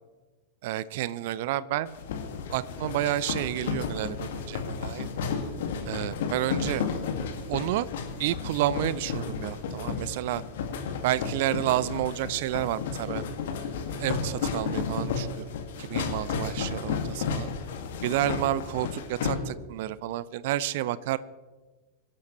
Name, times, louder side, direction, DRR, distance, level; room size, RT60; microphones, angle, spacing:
voice 1, 0.6-2.0 2.5-5.1 5.9-6.8 7.5-7.9 8.2-10.4 11.0-13.2 14.0-15.4 15.8-17.5 18.0-21.2, right 14 dB, 50° right, 19 dB, 0.6 m, -30 dB
sound 1, 1.9-19.3, left 5 dB, 55° left, 2.1 m, -33 dB
24.0 x 12.0 x 3.2 m, 1.3 s
figure-of-eight pair, 90°, 0 cm